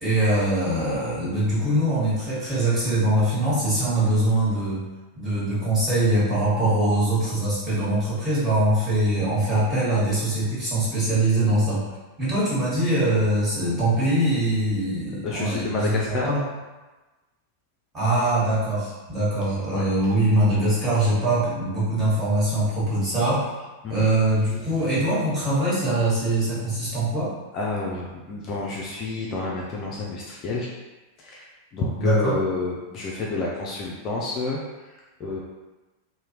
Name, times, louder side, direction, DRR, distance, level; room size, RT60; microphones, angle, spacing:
voice 1, 0.0-4.8 5.1-11.8 12.2-16.4 17.9-23.6 23.9-27.3 31.9-32.4, right 1 dB, 15° right, -10 dB, 1.4 m, -23 dB
voice 2, 15.2-16.3 19.7-19.8 23.8-23.9 27.5-30.7 31.2-34.6 35.2-35.4, left 3 dB, 35° left, -3 dB, 0.4 m, -29 dB
2.7 x 2.1 x 2.9 m, 1.2 s
figure-of-eight pair, 90°, 0 cm